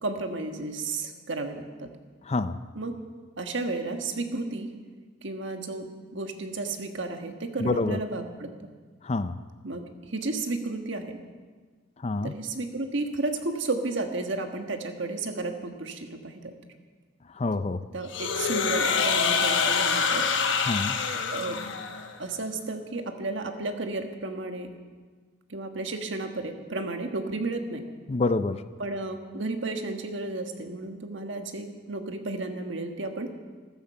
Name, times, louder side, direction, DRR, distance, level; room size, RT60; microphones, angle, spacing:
voice 1, 0.0-1.9 2.7-2.9 3.4-4.7 5.2-8.7 9.6-11.2 12.2-16.5 17.9-20.2 21.3-21.6 22.2-24.7 25.5-27.8 28.8-33.3, right 2 dB, 70° right, 5 dB, 1.5 m, -33 dB
voice 2, 2.2-2.6 7.6-8.0 9.0-9.4 12.0-12.3 17.3-17.8 20.7-20.9 28.1-28.6, left 3 dB, 30° left, 13 dB, 0.4 m, -27 dB
sound 1, 18.1-22.2, left 5 dB, 75° left, 1.1 m, -26 dB
14.5 x 13.5 x 5.7 m, 1.5 s
head